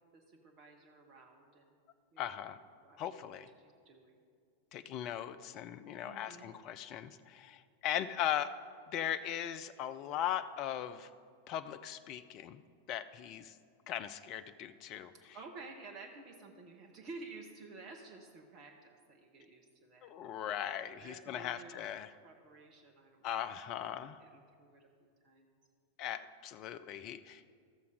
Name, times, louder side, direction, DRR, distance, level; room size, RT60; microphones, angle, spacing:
voice 1, 0.1-1.7 2.1-2.4 2.8-3.3 3.6-4.2 6.0-6.5 15.1-20.4 21.0-21.9 22.2-23.5 23.9-25.5, right 3 dB, 35° right, 1 dB, 1.0 m, -53 dB
voice 2, 2.2-2.6 3.0-3.5 4.7-8.6 8.9-11.1 11.5-12.6 12.9-13.5 13.9-15.1 20.0-22.1 23.2-24.2 26.0-27.5, left 10 dB, 40° left, 12 dB, 0.4 m, -39 dB
13.5 x 6.9 x 4.9 m, 2.2 s
figure-of-eight pair, 90°, 0 cm